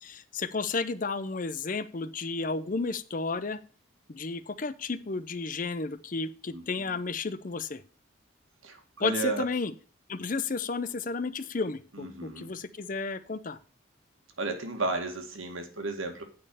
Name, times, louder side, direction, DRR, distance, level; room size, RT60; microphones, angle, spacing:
voice 1, 0.0-3.6 4.1-7.8 9.0-9.7 10.1-13.6, left 4 dB, 40° left, 14 dB, 0.6 m, -32 dB
voice 2, 6.5-7.0 8.6-9.5 11.9-12.5 14.4-16.2, right 3 dB, 80° right, 5 dB, 1.9 m, -33 dB
8.7 x 5.5 x 6.9 m, 0.39 s
head